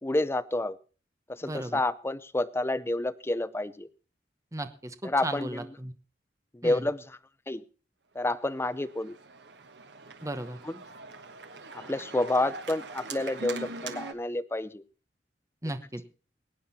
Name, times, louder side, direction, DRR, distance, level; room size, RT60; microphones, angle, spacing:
voice 1, 0.0-0.8 1.3-3.9 5.0-5.7 6.5-7.2 7.5-7.6 8.1-9.2 10.6-10.8 11.7-14.8, left 2 dB, 15° left, 13 dB, 0.6 m, -29 dB
voice 2, 1.4-1.8 4.5-5.9 6.6-6.8 10.2-10.6 15.6-16.0, right 1 dB, 20° right, 10 dB, 1.0 m, -36 dB
Organ, 8.3-14.1, right 3 dB, 75° right, 1.3 m, -42 dB
21.5 x 9.1 x 4.2 m, 0.37 s
head